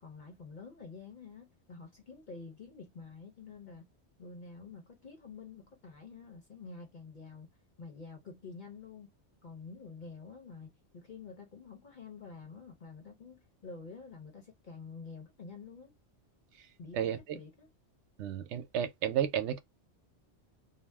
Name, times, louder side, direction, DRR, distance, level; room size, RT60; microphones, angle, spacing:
voice 1, 0.0-3.9 4.2-7.5 7.8-9.1 9.4-15.9 16.8-17.7, left 4 dB, 50° left, 0.8 m, -48 dB
voice 2, 18.2-19.6, right 9 dB, 80° right, 0.9 m, -32 dB
2.5 x 2.1 x 3.2 m
omnidirectional pair, 1.2 m